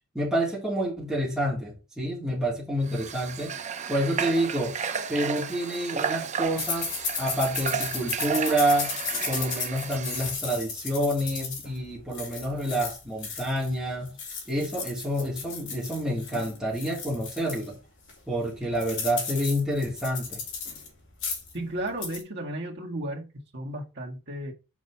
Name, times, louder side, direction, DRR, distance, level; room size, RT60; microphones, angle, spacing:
voice 1, 0.1-3.5 3.9-4.8 5.1-6.9 7.2-8.9 9.2-14.1 14.5-17.8 18.3-20.4, right 1 dB, ahead, 3.0 m, -28 dB
Water / Water tap faucet, 2.9-10.4, right 7 dB, 30° right, 0.5 m, -33 dB
sound 1, 6.6-13.7 14.1-17.7 18.1-18.2 18.4-20.9 21.1-21.6 21.9-22.2, left 5 dB, 55° left, 3.9 m, -35 dB
voice 2, 21.5-24.5, right 1 dB, 50° right, 1.8 m, -34 dB
6.3 x 5.3 x 5.7 m
head